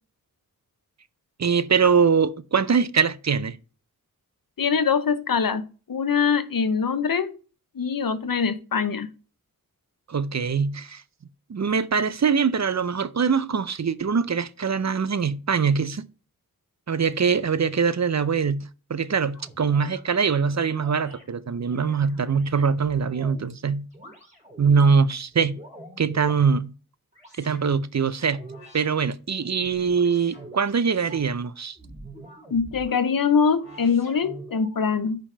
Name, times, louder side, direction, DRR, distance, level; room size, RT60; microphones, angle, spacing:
voice 1, 1.4-3.6 10.1-11.0 11.5-16.0 16.9-23.9 24.6-25.6 26.0-26.7 27.4-28.4 28.7-31.8, right 6 dB, 55° right, 0.6 m, -23 dB
voice 2, 4.6-7.3 7.7-9.1 32.5-35.2, left 6 dB, 85° left, 0.8 m, -23 dB
sound 1, 19.3-20.0 20.7-21.2 21.7-23.5 23.9-24.8 25.3-26.5 27.1-27.7 28.3-28.9 29.4-31.3 31.8-33.0 33.5-34.8, right 1 dB, 20° right, 3.8 m, -45 dB
5.3 x 5.2 x 5.4 m
wide cardioid pair, 55°, 33 cm